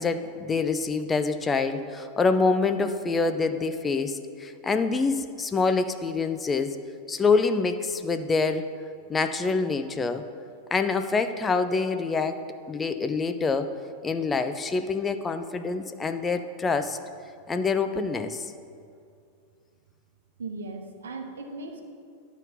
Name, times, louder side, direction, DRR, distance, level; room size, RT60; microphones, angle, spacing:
voice 1, 0.0-6.8 7.1-8.7 9.1-10.2 10.7-12.4 12.7-13.7 14.0-17.0 17.5-18.5, left 4 dB, 15° left, 9 dB, 0.4 m, -26 dB
voice 2, 20.4-21.8, right 3 dB, 65° right, 5 dB, 0.9 m, -37 dB
11.5 x 4.1 x 5.4 m, 2.4 s
figure-of-eight pair, 90°, 0 cm